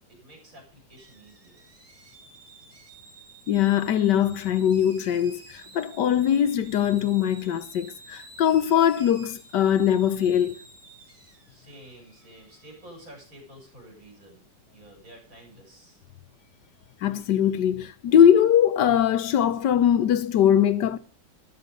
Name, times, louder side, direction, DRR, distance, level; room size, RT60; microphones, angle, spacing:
voice 1, 0.1-1.6 11.5-14.5 14.7-16.0, right 1 dB, 50° right, 7.1 m, -49 dB
sound 1, 1.0-13.2, right 3 dB, 75° right, 4.4 m, -51 dB
voice 2, 3.5-10.6 17.0-21.0, left 9 dB, 75° left, 1.4 m, -21 dB
12.5 x 12.0 x 5.3 m
omnidirectional pair, 1.9 m